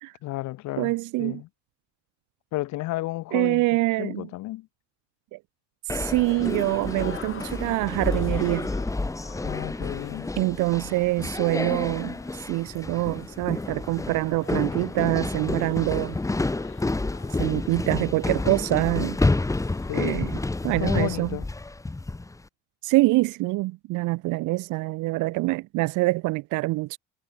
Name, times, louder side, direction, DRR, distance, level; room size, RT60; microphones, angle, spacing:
voice 1, 0.2-1.5 2.5-3.6 4.0-4.7 9.4-10.3 19.9-20.3 20.6-21.5, left 17 dB, 60° left, 0.8 m, -32 dB
voice 2, 0.8-1.4 3.3-4.3 5.3-5.4 5.9-8.7 10.4-16.2 17.4-19.2 19.9-20.4 20.6-21.3 22.8-27.0, right 21 dB, 70° right, 0.6 m, -25 dB
sound 1, 5.9-22.4, left 2 dB, 10° left, 1.1 m, -29 dB
sound 2, 6.3-20.7, left 8 dB, 40° left, 6.4 m, -49 dB
cardioid pair, 105°, 32 cm